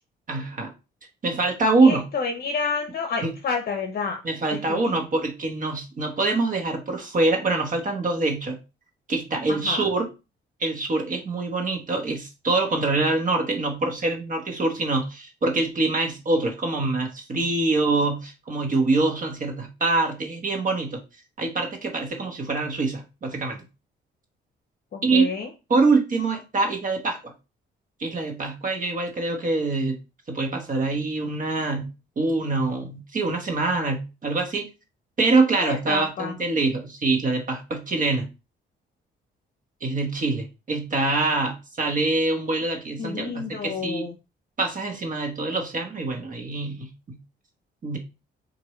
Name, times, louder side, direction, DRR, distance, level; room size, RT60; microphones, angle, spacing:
voice 1, 0.3-0.7 1.2-2.1 3.2-3.3 4.2-8.6 9.1-10.1 10.6-21.0 21.4-23.6 25.0-25.3 25.7-27.3 28.0-30.0 30.3-31.9 32.2-34.7 35.2-38.3 39.8-44.1 44.6-47.2 47.8-48.0, right 3 dB, 40° right, 4 dB, 1.2 m, -24 dB
voice 2, 1.8-4.2 4.5-4.8 9.6-9.8 24.9-25.5 35.6-36.3 43.0-44.1, left 5 dB, 50° left, 4 dB, 0.7 m, -29 dB
4.6 x 2.6 x 3.1 m, 0.29 s
cardioid pair, 90°, 20 cm